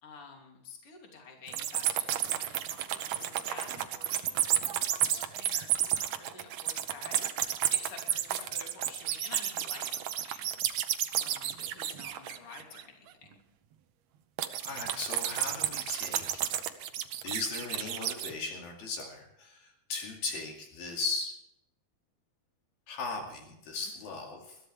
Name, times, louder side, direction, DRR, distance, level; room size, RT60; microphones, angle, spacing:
voice 1, 0.0-13.4, left 5 dB, 40° left, 1 dB, 3.5 m, -49 dB
sound 1, 1.5-12.8 14.4-18.3, right 11 dB, 85° right, 1.5 m, -31 dB
voice 2, 14.6-16.5 17.2-21.3 22.9-24.6, left 3 dB, 70° left, 1 dB, 4.1 m, -37 dB
21.5 x 14.0 x 3.4 m, 0.81 s
omnidirectional pair, 4.4 m